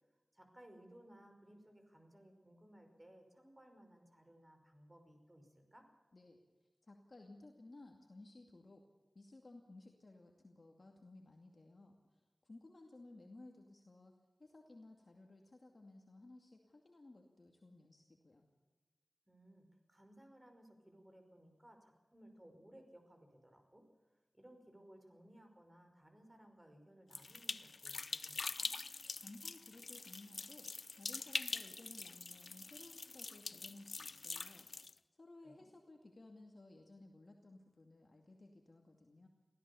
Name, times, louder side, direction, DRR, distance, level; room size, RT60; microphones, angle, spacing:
voice 1, 0.3-5.9 19.3-23.8 24.1-28.7 35.4-35.7, right 1 dB, 20° right, 5 dB, 5.3 m, -61 dB
voice 2, 6.1-8.9 9.1-18.5 29.2-34.7 35.1-39.3, left 2 dB, 50° left, 2 dB, 2.4 m, -58 dB
sound 1, 27.1-34.9, left 3 dB, 70° left, 0.7 m, -44 dB
25.0 x 16.5 x 7.1 m, 1.2 s
wide cardioid pair, 70°, 0 cm